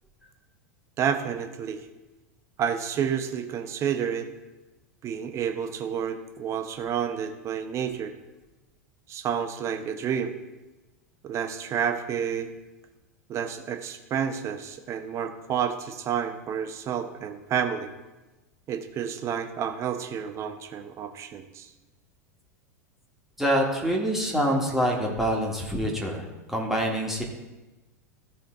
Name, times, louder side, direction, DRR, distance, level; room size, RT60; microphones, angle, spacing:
voice 1, 1.0-1.8 2.6-4.3 5.0-8.1 9.1-10.3 11.2-12.5 13.3-17.9 18.7-21.7, right 8 dB, 35° right, 7 dB, 1.0 m, -30 dB
voice 2, 23.4-27.2, equal, 5° right, -2 dB, 1.7 m, -26 dB
14.5 x 5.0 x 3.8 m, 1.1 s
figure-of-eight pair, 85°, 9 cm